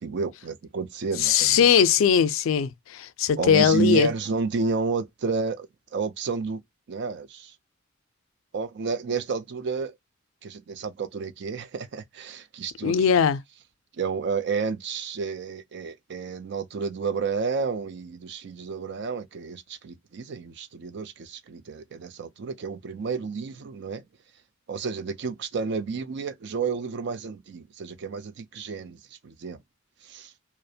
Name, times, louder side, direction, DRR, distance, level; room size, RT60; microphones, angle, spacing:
voice 1, 0.0-1.6 3.4-6.6 6.9-7.6 8.5-10.0 10.4-12.9 14.0-24.0 24.7-29.6 30.0-30.3, right 5 dB, 60° right, 0.4 m, -31 dB
voice 2, 1.2-4.1 12.8-13.4, left 7 dB, 80° left, 0.4 m, -20 dB
2.4 x 2.1 x 2.6 m
head